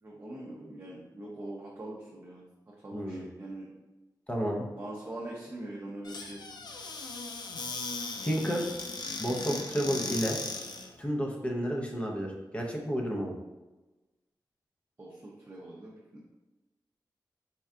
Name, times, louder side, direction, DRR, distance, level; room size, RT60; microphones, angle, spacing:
voice 1, 0.0-3.7 4.8-6.4 15.0-16.2, right 1 dB, 30° right, -4 dB, 0.5 m, -43 dB
voice 2, 2.9-3.2 4.3-4.7 8.2-8.7 9.2-10.4 11.0-13.3, equal, 15° left, -1 dB, 0.6 m, -31 dB
Squeak / Cupboard open or close, 6.0-10.9, left 3 dB, 70° left, 0.4 m, -38 dB
4.3 x 2.3 x 3.6 m, 1.1 s
wide cardioid pair, 175°, 8 cm